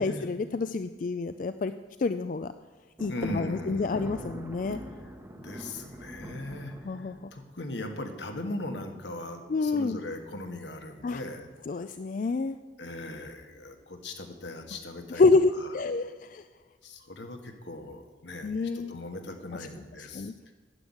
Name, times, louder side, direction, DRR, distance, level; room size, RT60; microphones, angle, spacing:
voice 1, 0.0-1.7 2.0-2.5 3.0-4.8 6.8-7.1 9.5-10.0 11.0-11.2 11.7-12.6 15.1-16.4 18.4-19.0 20.1-20.3, left 3 dB, 45° left, 10 dB, 0.3 m, -27 dB
Thunder, 3.0-7.6, right 1 dB, 15° right, 1.0 m, -43 dB
voice 2, 3.1-4.1 5.3-11.5 12.8-15.2 15.5-15.7 16.8-20.3, left 1 dB, 80° left, 5 dB, 1.6 m, -39 dB
9.8 x 8.1 x 8.5 m, 1.4 s
head